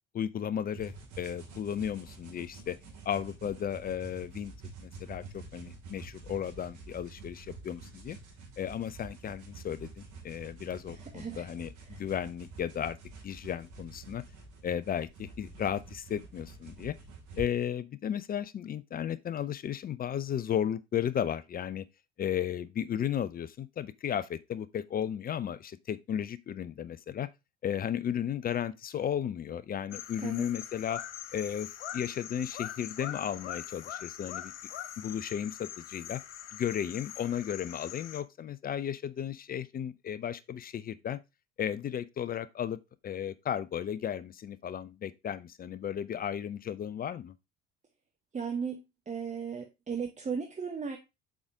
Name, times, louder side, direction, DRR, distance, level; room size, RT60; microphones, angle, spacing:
voice 1, 0.1-2.8 3.1-4.5 4.8-8.2 8.6-13.0 13.2-14.2 14.6-17.0 17.4-21.8 22.2-27.3 27.6-31.0 31.3-34.5 35.0-36.2 36.5-41.2 41.6-47.3, left 9 dB, 25° left, 0.5 m, -34 dB
sound 1, 0.8-17.5, right 3 dB, 55° right, 2.8 m, -48 dB
voice 2, 10.9-11.5 11.9-12.0 30.2-30.5 48.3-51.0, right 6 dB, 20° right, 1.0 m, -36 dB
sound 2, 29.9-38.2, left 11 dB, 70° left, 0.7 m, -43 dB
7.2 x 4.9 x 3.4 m
figure-of-eight pair, 60°, 35 cm